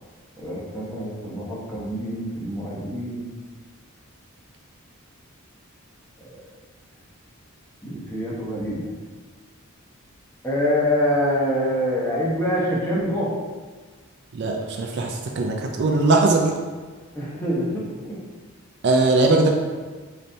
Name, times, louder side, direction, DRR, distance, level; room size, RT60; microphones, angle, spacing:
voice 1, 0.4-3.3 6.2-6.4 7.8-8.9 10.4-13.3 17.1-18.2, equal, 10° left, -6 dB, 0.8 m, -25 dB
voice 2, 14.3-16.5 18.8-19.5, right 2 dB, 50° right, 1 dB, 0.4 m, -20 dB
4.0 x 3.3 x 2.6 m, 1.4 s
head